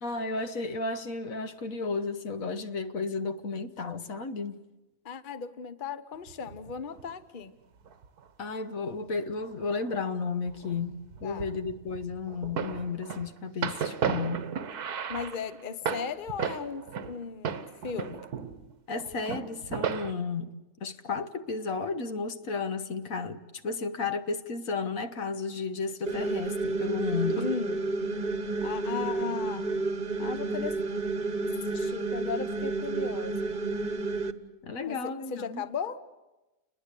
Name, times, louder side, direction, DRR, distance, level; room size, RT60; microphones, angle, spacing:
voice 1, 0.0-4.6 8.4-14.5 18.9-27.5 34.6-35.6, left 4 dB, 65° left, 1.5 m, -33 dB
voice 2, 5.0-7.5 11.2-11.5 15.1-18.3 27.3-27.8 28.6-29.7 30.2-30.7 31.7-33.5 34.8-36.0, left 6 dB, 40° left, 1.0 m, -36 dB
sound 1, 6.3-7.1 7.9-8.2 9.2-10.0 10.2-17.2 17.4-18.7 19.0-20.1, right 7 dB, 85° right, 1.7 m, -35 dB
sound 2, 26.1-34.3, right 3 dB, 35° right, 1.2 m, -31 dB
29.5 x 21.0 x 8.3 m
omnidirectional pair, 1.6 m